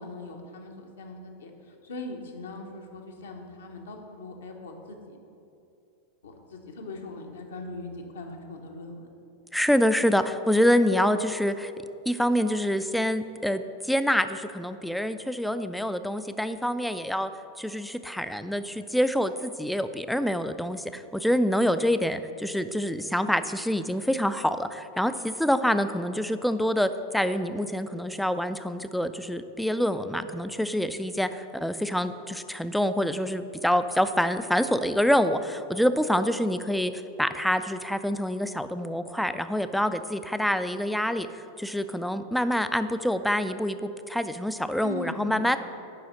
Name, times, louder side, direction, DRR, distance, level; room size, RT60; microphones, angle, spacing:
voice 1, 0.0-5.2 6.2-9.1 44.8-45.6, left 2 dB, 65° left, 3 dB, 1.0 m, -40 dB
voice 2, 9.5-11.7 12.1-17.3 17.6-36.9 37.2-45.6, equal, ahead, 11 dB, 0.3 m, -26 dB
7.7 x 5.5 x 5.8 m, 2.7 s
figure-of-eight pair, 90°, 0 cm